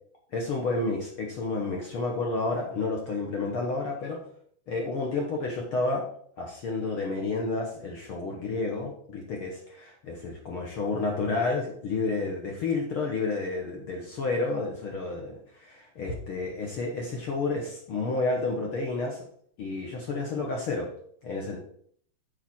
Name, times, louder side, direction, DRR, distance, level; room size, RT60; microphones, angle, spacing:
voice 1, 0.3-4.2 4.7-6.0 6.4-19.2 19.6-20.9 21.2-21.6, left 3 dB, 60° left, 0 dB, 1.4 m, -30 dB
7.2 x 4.9 x 6.1 m, 0.62 s
omnidirectional pair, 3.9 m